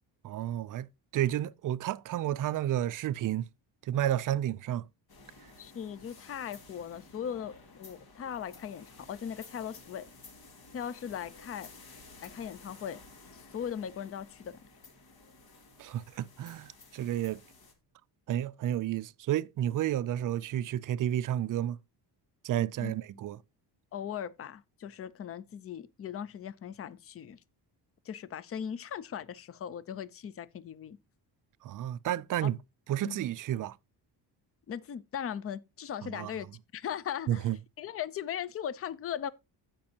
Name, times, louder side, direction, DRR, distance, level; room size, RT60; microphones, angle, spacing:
voice 1, 0.2-0.9 1.1-3.5 3.9-4.8 15.8-17.4 18.3-21.8 22.4-23.4 31.6-32.6 32.9-33.8 36.0-36.3 37.3-37.6, right 12 dB, 45° right, 0.4 m, -31 dB
sound 1, 5.1-17.7, left 3 dB, 55° left, 2.1 m, -54 dB
voice 2, 5.6-10.1 10.7-11.7 12.2-13.0 13.3-14.6 22.8-22.9 23.9-27.4 28.1-31.0 32.4-32.5 33.0-33.2 34.7-36.5 36.7-37.5 37.8-39.3, left 9 dB, 30° left, 0.5 m, -39 dB
16.0 x 5.3 x 2.8 m
cardioid pair, 125°, 45 cm